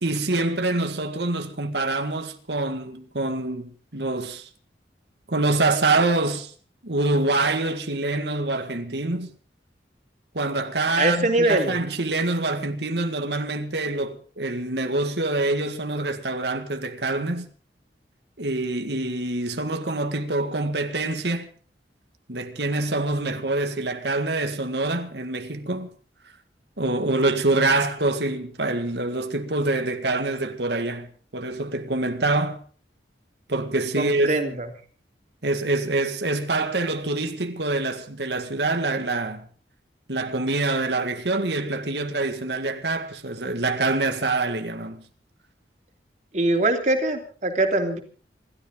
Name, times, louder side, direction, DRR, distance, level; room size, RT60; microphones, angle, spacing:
voice 1, 0.0-4.5 5.3-6.5 6.8-9.3 10.3-17.5 18.4-21.5 22.3-25.9 26.8-31.1 31.3-32.6 33.5-34.4 35.4-39.5 40.1-45.0, right 2 dB, 75° right, 1.9 m, -25 dB
voice 2, 11.0-11.8 34.0-34.7 46.3-48.0, right 2 dB, 40° right, 3.1 m, -22 dB
27.5 x 13.0 x 3.9 m
head